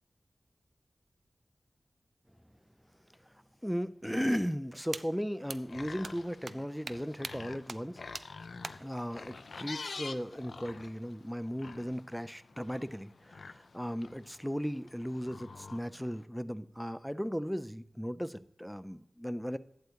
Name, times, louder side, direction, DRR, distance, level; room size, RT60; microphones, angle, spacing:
voice 1, 3.6-8.0 8.8-19.6, equal, ahead, 15 dB, 0.4 m, -36 dB
sound 1, 4.9-5.0 5.5-5.6 6.0-6.1 6.4-6.6 6.9-7.0 7.2-7.3 7.7-7.8 8.1-8.2 8.6-8.7, right 4 dB, 75° right, 0.4 m, -39 dB
sound 2, 5.4-16.2, left 4 dB, 85° left, 0.4 m, -48 dB
11.5 x 8.3 x 2.8 m, 0.75 s
wide cardioid pair, 70°, 0 cm